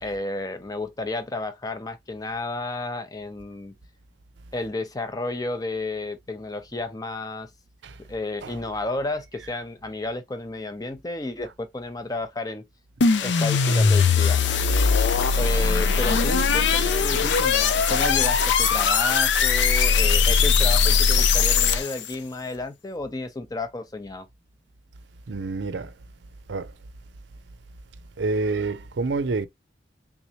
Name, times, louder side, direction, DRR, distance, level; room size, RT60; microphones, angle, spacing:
voice 1, 0.0-3.7 4.5-7.5 8.1-12.6 13.2-14.4 15.4-24.3, left 2 dB, 20° left, 0.6 m, -32 dB
sound 1, 13.0-22.1, left 5 dB, 85° left, 0.5 m, -20 dB
voice 2, 25.3-25.9 26.5-26.7 28.2-29.5, right 3 dB, 75° right, 0.5 m, -28 dB
3.6 x 3.1 x 2.8 m
head